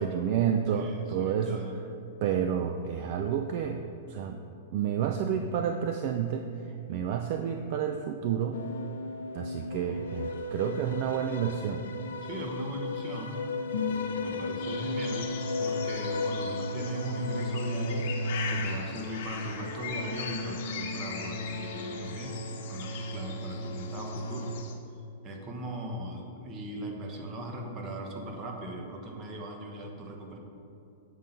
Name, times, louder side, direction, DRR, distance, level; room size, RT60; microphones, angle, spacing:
voice 1, 0.0-1.9 2.2-3.8 4.1-4.4 4.7-8.6 9.3-11.8, right 8 dB, 55° right, 6 dB, 0.4 m, -30 dB
voice 2, 0.7-1.8 12.2-13.4 14.2-15.3 15.6-18.1 18.5-22.4 22.7-24.5 25.2-30.4, right 1 dB, 35° right, 2 dB, 1.1 m, -39 dB
sound 1, 8.5-24.6, left 2 dB, 80° left, 0.6 m, -35 dB
sound 2, 14.6-24.7, left 6 dB, 60° left, 1.0 m, -41 dB
7.5 x 3.8 x 5.6 m, 2.7 s
hypercardioid pair, 130°, 0 cm